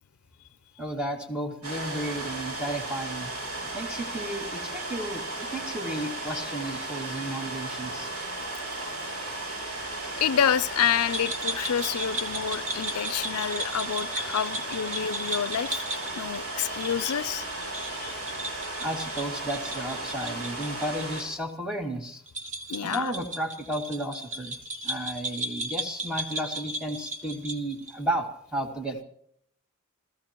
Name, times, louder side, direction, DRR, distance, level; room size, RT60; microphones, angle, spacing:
voice 1, 0.8-3.3 3.6-8.1 18.8-22.2 22.8-24.6 24.8-29.0, right 1 dB, 5° right, 3 dB, 2.3 m, -33 dB
sound 1, 1.6-21.2, right 2 dB, 80° right, 7.9 m, -35 dB
voice 2, 10.2-15.9 16.2-17.5 17.9-18.2 22.7-23.1, left 8 dB, 90° left, 18 dB, 0.5 m, -28 dB
sound 2, 11.1-21.2 21.5-21.6 22.3-28.0, right 1 dB, 35° right, 1.5 m, -36 dB
27.5 x 15.0 x 3.0 m, 0.70 s
head